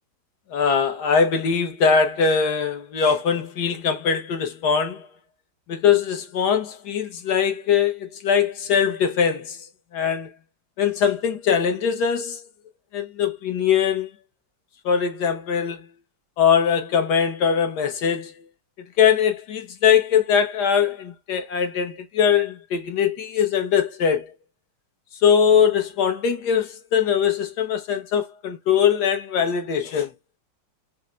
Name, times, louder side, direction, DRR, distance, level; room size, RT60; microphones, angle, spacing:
voice 1, 0.5-5.0 5.7-9.6 9.9-10.3 10.8-12.4 12.9-14.1 14.8-15.8 16.4-18.3 19.0-24.3 25.2-30.1, left 7 dB, 70° left, 1.3 m, -21 dB
5.4 x 2.1 x 2.3 m
omnidirectional pair, 2.0 m